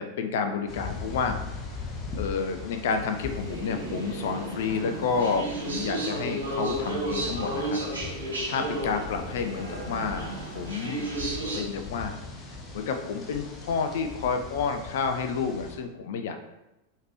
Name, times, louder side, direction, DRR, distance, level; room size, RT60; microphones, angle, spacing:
voice 1, 0.0-1.4 2.1-7.8 8.5-11.1 11.5-12.2 12.7-16.4, left 5 dB, 55° left, 7 dB, 0.4 m, -30 dB
sound 1, 0.7-15.8, left 4 dB, 25° left, 0.7 m, -40 dB
sound 2, 3.1-11.6, right 2 dB, 75° right, 1.1 m, -33 dB
4.7 x 3.4 x 3.0 m, 0.95 s
figure-of-eight pair, 90°, 0 cm